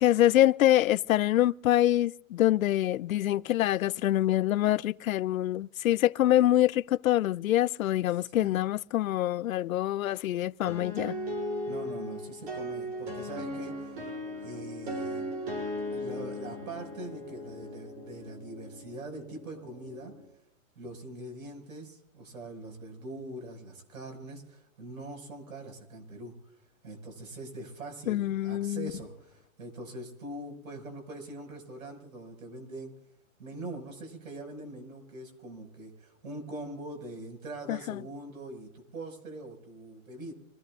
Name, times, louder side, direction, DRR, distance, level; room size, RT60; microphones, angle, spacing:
voice 1, 0.0-11.2 28.1-28.9 37.7-38.0, left 13 dB, 75° left, 0.5 m, -25 dB
voice 2, 8.2-8.6 11.7-14.1 14.4-15.3 15.9-20.1 20.8-26.5 26.8-32.9 33.4-40.3, right 2 dB, 85° right, 5.7 m, -43 dB
sound 1, 10.7-20.3, equal, 40° right, 7.4 m, -37 dB
26.5 x 16.0 x 2.4 m
hypercardioid pair, 165°, 41 cm